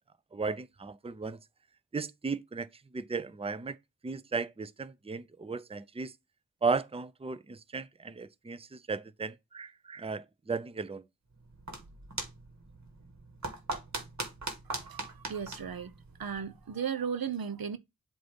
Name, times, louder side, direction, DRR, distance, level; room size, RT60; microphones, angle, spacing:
voice 1, 0.3-1.4 1.9-2.7 2.9-3.8 4.0-6.1 6.6-11.0, right 4 dB, 15° right, 0.5 m, -35 dB
sound 1, 11.3-16.7, right 2 dB, 50° right, 1.6 m, -41 dB
voice 2, 14.7-15.9 16.2-17.8, right 7 dB, 85° right, 0.7 m, -36 dB
7.7 x 2.7 x 5.1 m
wide cardioid pair, 50°, 35 cm